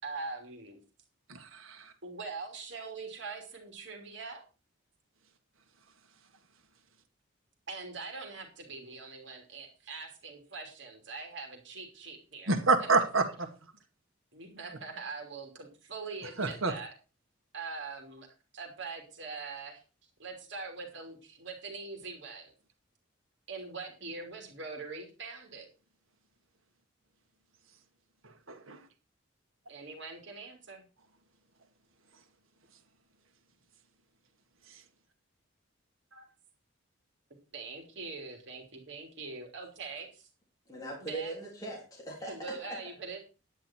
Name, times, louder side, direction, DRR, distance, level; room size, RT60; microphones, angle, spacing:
voice 1, 0.0-0.8 2.0-4.4 7.7-12.5 14.3-16.9 17.5-18.3 18.5-19.8 20.2-22.5 23.5-25.7 29.7-30.9 36.2-36.3 37.5-40.3 41.0-41.4 42.2-43.2, right 4 dB, 60° right, 3 dB, 3.1 m, -42 dB
voice 2, 1.3-1.9 12.5-13.5 16.4-16.7 28.5-28.8, right 3 dB, 80° right, 7 dB, 1.7 m, -28 dB
voice 3, 40.7-42.8, right 2 dB, 15° left, -3 dB, 3.5 m, -40 dB
10.5 x 10.0 x 4.5 m, 0.32 s
head